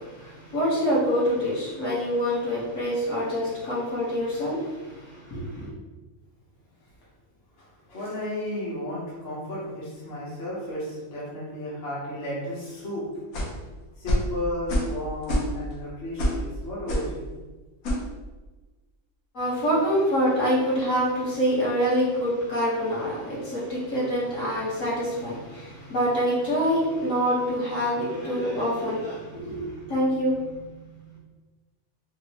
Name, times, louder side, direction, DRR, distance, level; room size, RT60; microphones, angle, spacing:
voice 1, 0.0-5.7 19.3-30.6, equal, 65° left, -8 dB, 1.6 m, -26 dB
voice 2, 7.6-13.1 13.6-13.7 13.9-17.3, left 1 dB, 50° left, -8 dB, 1.1 m, -33 dB
sound 1, 13.3-13.6 14.1-14.3 14.7-15.0 15.2-15.7 16.2-16.4 16.9-17.1 17.8-18.1, equal, 85° left, 1.2 m, -25 dB
4.2 x 2.1 x 2.8 m, 1.2 s
omnidirectional pair, 1.5 m